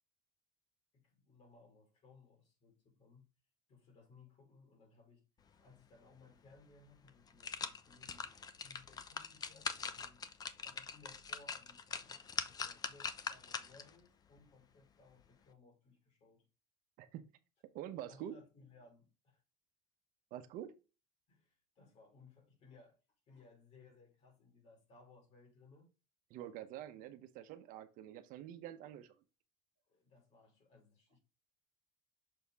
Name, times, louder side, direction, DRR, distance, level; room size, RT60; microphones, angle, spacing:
voice 1, 0.9-3.3 3.7-8.3 8.6-10.2 10.6-16.5 18.1-19.4 21.3-23.0 23.3-25.9 29.9-31.2, left 3 dB, 45° left, 3.1 m, -63 dB
sound 1, 6.5-6.6 7.1-13.9 14.4-14.5, left 6 dB, 25° left, 0.6 m, -43 dB
voice 2, 17.7-18.4 20.3-20.7 26.3-29.1, right 11 dB, 60° right, 0.9 m, -47 dB
6.6 x 4.2 x 3.5 m
cardioid pair, 135°, 16 cm